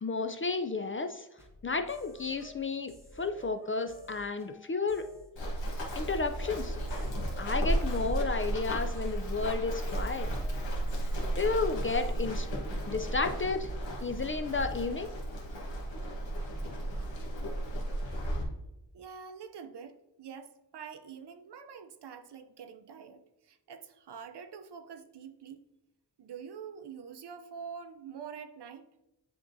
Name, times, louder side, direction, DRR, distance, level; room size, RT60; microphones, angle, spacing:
voice 1, 0.0-1.3 1.6-5.1 6.0-6.8 7.4-10.3 11.4-12.5 12.9-13.7 14.0-15.1, left 4 dB, 30° left, 8 dB, 0.4 m, -32 dB
sound 1, 1.4-13.3, equal, 5° right, 1.3 m, -54 dB
Run, 5.4-18.4, right 1 dB, 90° left, 1.4 m, -34 dB
voice 2, 18.9-25.6 26.2-28.8, right 6 dB, 65° right, 10 dB, 0.7 m, -46 dB
10.5 x 3.7 x 2.6 m, 0.94 s
wide cardioid pair, 95°, 44 cm